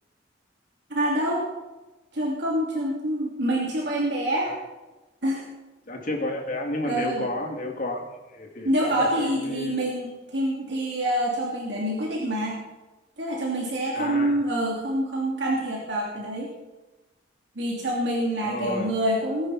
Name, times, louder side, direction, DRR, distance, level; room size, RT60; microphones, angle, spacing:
voice 1, 0.9-1.4 2.1-4.5 5.2-5.5 6.8-7.2 8.6-12.5 13.2-16.5 17.5-19.5, right 1 dB, 60° right, -4 dB, 3.0 m, -26 dB
voice 2, 5.9-8.0 8.3-9.7 13.9-14.4 18.4-18.9, left 1 dB, 45° left, 2 dB, 2.5 m, -31 dB
21.0 x 11.0 x 4.3 m, 1.1 s
head